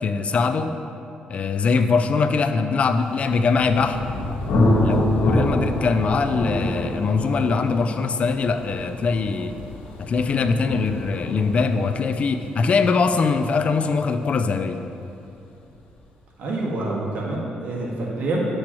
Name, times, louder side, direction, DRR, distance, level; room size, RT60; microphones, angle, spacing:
voice 1, 0.0-0.7 1.3-4.0 4.8-9.5 10.0-14.8, left 4 dB, 45° left, 9 dB, 0.4 m, -22 dB
Thunder, 3.2-14.7, left 1 dB, 80° left, 1.5 m, -27 dB
voice 2, 16.4-18.4, right 2 dB, 70° right, -3 dB, 1.7 m, -27 dB
10.0 x 7.7 x 3.0 m, 2.7 s
cardioid pair, 100°, 3 cm